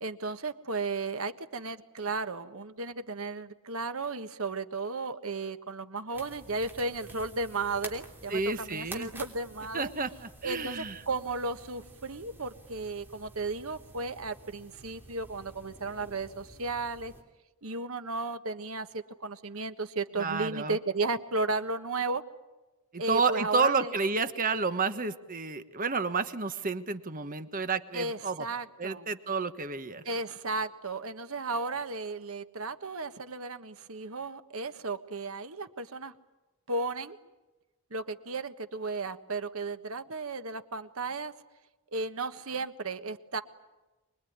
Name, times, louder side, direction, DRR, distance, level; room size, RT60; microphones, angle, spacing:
voice 1, 0.0-9.8 10.4-17.1 17.6-22.2 23.0-23.9 27.9-29.1 30.0-36.1 36.7-37.2 37.9-41.3 41.9-43.4, right 3 dB, 70° right, 9 dB, 1.4 m, -34 dB
sound 1, 6.1-17.2, right 2 dB, 10° right, 3.1 m, -50 dB
voice 2, 8.3-9.1 9.7-11.0 20.2-20.8 22.9-28.5 28.8-30.0, right 4 dB, 40° right, 10 dB, 1.3 m, -30 dB
25.0 x 21.5 x 9.5 m, 1.1 s
head